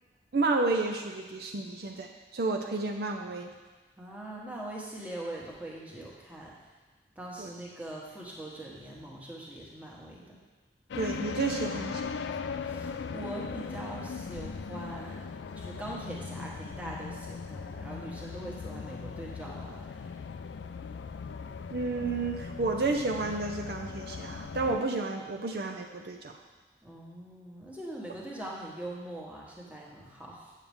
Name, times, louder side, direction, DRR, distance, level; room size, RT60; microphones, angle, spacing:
voice 1, 0.3-3.5 7.4-7.5 11.0-12.2 21.7-26.4, right 3 dB, 60° right, 2 dB, 0.5 m, -31 dB
voice 2, 4.0-6.7 7.1-10.4 12.6-20.2 26.8-30.5, right 1 dB, 10° right, -4 dB, 1.2 m, -42 dB
sound 1, 10.9-24.8, left 5 dB, 90° left, 0.4 m, -39 dB
8.9 x 7.3 x 3.5 m, 1.3 s
head